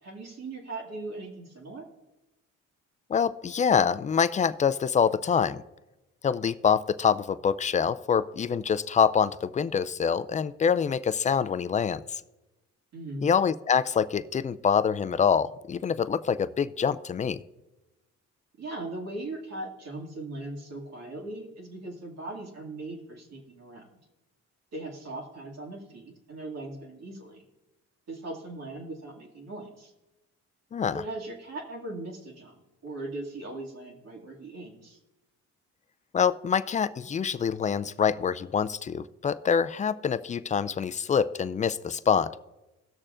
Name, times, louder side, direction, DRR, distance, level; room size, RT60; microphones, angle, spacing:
voice 1, 0.0-1.9 12.9-13.3 18.6-23.9 24.7-27.4 28.1-29.9 30.9-35.0, right 2 dB, 60° right, -1 dB, 2.2 m, -39 dB
voice 2, 3.1-5.6 6.2-12.2 13.2-17.4 30.7-31.0 36.1-42.3, left 7 dB, 25° left, 15 dB, 0.4 m, -25 dB
18.0 x 6.6 x 2.5 m, 1.0 s
cardioid pair, 90°, 30 cm